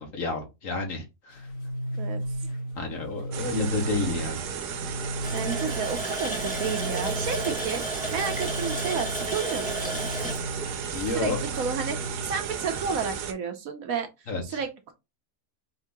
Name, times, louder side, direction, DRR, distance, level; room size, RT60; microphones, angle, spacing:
voice 1, 0.0-1.5 2.7-4.4 10.9-11.4 14.3-14.6, left 3 dB, 55° left, 1.6 m, -30 dB
sound 1, 1.3-12.3, right 1 dB, 80° left, 1.9 m, -35 dB
sound 2, 3.3-13.3, right 7 dB, 85° right, 1.3 m, -34 dB
Water tap faucet, 5.2-11.7 12.1-12.2 12.6-12.8, equal, 5° left, 1.1 m, -34 dB
voice 2, 5.3-10.0 10.9-14.1 14.4-14.9, right 6 dB, 70° right, 1.1 m, -32 dB
4.4 x 2.8 x 3.5 m
omnidirectional pair, 1.7 m